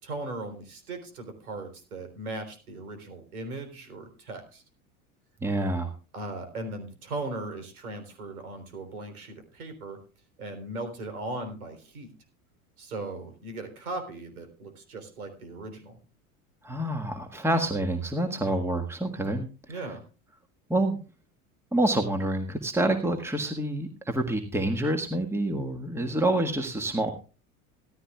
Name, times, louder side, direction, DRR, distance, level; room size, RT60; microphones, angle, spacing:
voice 1, 0.0-4.6 6.1-10.0 10.4-12.1 12.8-16.0 19.7-20.0, right 2 dB, 85° right, 8 dB, 3.7 m, -38 dB
voice 2, 5.4-5.9 16.6-19.5 20.7-21.0 21.7-27.1, right 1 dB, 5° right, 6 dB, 1.6 m, -27 dB
16.0 x 14.0 x 2.3 m, 0.33 s
hypercardioid pair, 85°, 43 cm